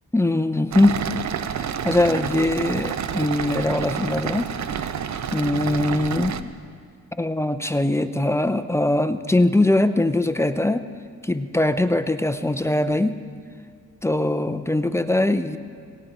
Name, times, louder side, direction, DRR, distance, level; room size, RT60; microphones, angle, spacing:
voice 1, 0.1-1.0 1.5-4.5 5.3-6.5 7.2-10.8 11.2-13.2 14.0-15.6, left 1 dB, 10° left, 10 dB, 0.5 m, -21 dB
sound 1, 0.7-6.4, right 8 dB, 60° right, 0.6 m, -29 dB
17.5 x 17.5 x 4.2 m, 2.1 s
wide cardioid pair, 115°, 32 cm